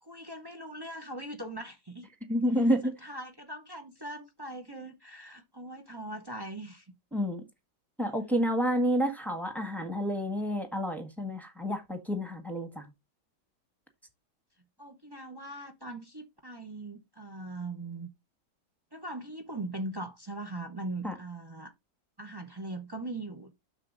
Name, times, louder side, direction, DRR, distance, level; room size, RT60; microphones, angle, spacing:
voice 1, 0.0-2.1 2.8-6.9 14.8-18.1 18.9-21.7 22.2-23.5, right 2 dB, 30° right, 0.4 m, -40 dB
voice 2, 2.3-2.9 7.1-7.4 8.0-12.9 21.0-21.1, equal, ahead, 1.3 m, -29 dB
9.8 x 6.6 x 2.5 m
omnidirectional pair, 1.9 m